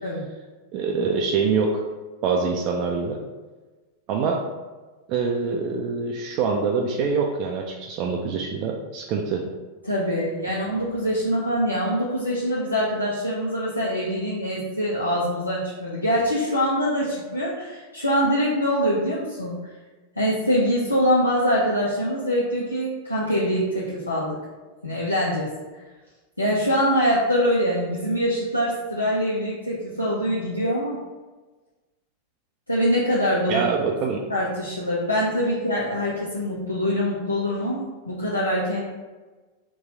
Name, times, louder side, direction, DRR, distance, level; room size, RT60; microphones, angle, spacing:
voice 1, 0.7-1.8 2.2-3.2 4.1-4.4 5.1-9.4 33.5-34.2, right 5 dB, 40° right, 0 dB, 0.4 m, -25 dB
voice 2, 9.8-19.6 20.2-24.4 24.8-25.5 26.4-31.0 32.7-33.7 34.3-38.8, equal, 85° left, -6 dB, 0.5 m, -24 dB
4.1 x 2.3 x 4.0 m, 1.3 s
figure-of-eight pair, 90°, 0 cm